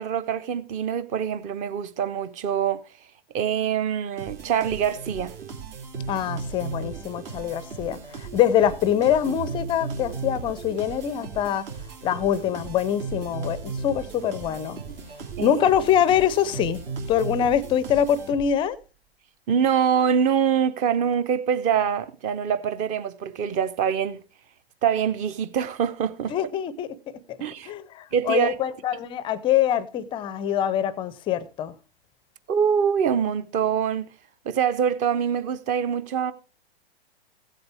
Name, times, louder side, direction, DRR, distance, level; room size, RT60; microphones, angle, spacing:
voice 1, 0.0-2.8 3.3-5.3 15.4-15.5 19.5-24.2 24.8-26.3 27.4-27.7 28.1-28.5 32.5-34.1 34.4-36.3, right 8 dB, 25° right, 0.7 m, -24 dB
sound 1, 4.2-18.7, right 4 dB, 60° right, 3.5 m, -36 dB
voice 2, 6.1-11.7 12.0-14.8 15.4-16.8 17.1-18.8 26.3-26.9 27.7-31.7, left 9 dB, 15° left, 0.5 m, -24 dB
16.0 x 7.9 x 3.5 m
hypercardioid pair, 120°, 32 cm